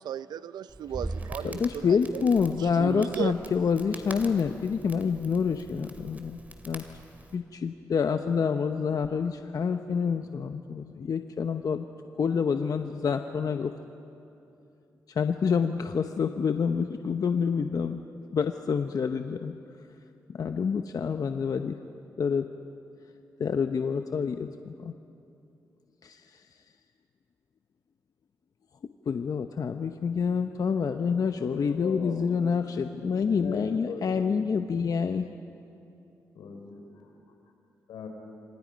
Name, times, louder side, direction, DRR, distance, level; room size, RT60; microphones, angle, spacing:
voice 1, 0.0-2.3 2.8-3.3, right 9 dB, 80° right, 16 dB, 0.6 m, -35 dB
Crackle, 0.7-7.4, right 2 dB, 20° right, 2.8 m, -42 dB
voice 2, 1.4-6.8 7.3-11.9 12.2-13.7 15.1-18.0 18.3-19.5 20.3-21.7 22.2-22.5 23.4-24.9 26.0-26.5 29.1-35.3, left 6 dB, 60° left, 7 dB, 0.9 m, -27 dB
voice 3, 31.5-34.3 36.4-37.2 37.9-38.1, left 4 dB, 85° left, 3 dB, 3.9 m, -41 dB
28.0 x 25.0 x 5.2 m, 2.7 s
supercardioid pair, 55°, 7 cm